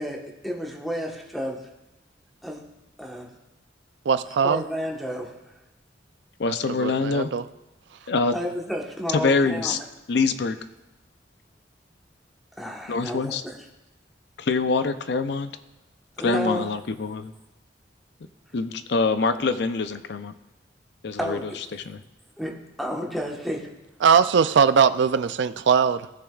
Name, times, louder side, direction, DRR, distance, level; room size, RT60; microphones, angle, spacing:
voice 1, 0.0-1.6 2.4-2.6 3.0-3.3 4.3-5.3 8.3-9.8 12.6-13.5 16.2-16.6 21.2-21.6 22.4-22.5 22.8-23.7, equal, ahead, -2 dB, 1.3 m, -31 dB
voice 2, 4.1-4.6 6.8-7.4 24.0-26.1, right 6 dB, 75° right, 13 dB, 0.4 m, -20 dB
voice 3, 6.4-7.3 8.1-8.4 9.1-9.8 10.1-10.6 12.9-13.4 14.4-15.5 16.2-17.3 18.5-20.3 21.0-22.0, left 4 dB, 70° left, 11 dB, 0.5 m, -25 dB
16.5 x 7.0 x 2.4 m, 0.98 s
head